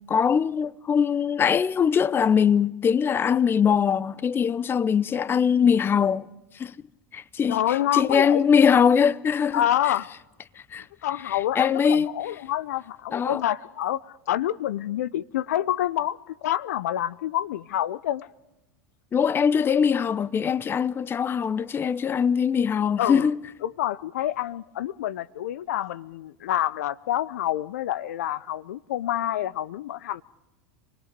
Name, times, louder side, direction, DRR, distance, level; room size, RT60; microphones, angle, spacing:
voice 1, 0.1-6.3 6.5-6.7 7.1-9.9 10.7-10.9 11.3-12.1 13.1-13.4 19.1-23.4, left 7 dB, 25° left, 0.7 m, -22 dB
voice 2, 7.5-8.5 9.5-10.1 11.0-18.3 23.0-23.3 23.6-30.2, left 12 dB, 70° left, 0.7 m, -27 dB
27.5 x 20.5 x 5.2 m
hypercardioid pair, 85°, 9 cm